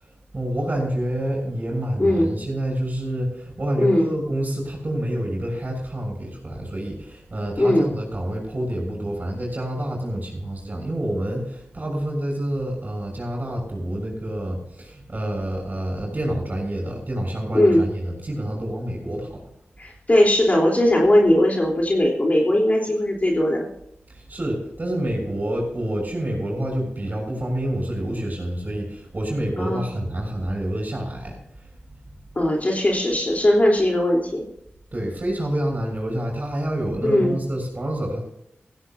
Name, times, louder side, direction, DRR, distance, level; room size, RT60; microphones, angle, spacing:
voice 1, 0.3-19.4 24.1-31.4 34.9-38.2, right 1 dB, 40° right, -2 dB, 6.7 m, -28 dB
voice 2, 2.0-2.3 3.8-4.1 7.6-7.9 17.5-17.9 19.8-23.7 29.6-29.9 32.4-34.4 37.0-37.4, left 1 dB, 40° left, 0 dB, 3.4 m, -19 dB
17.5 x 15.5 x 2.7 m, 0.79 s
cardioid pair, 60°, 4 cm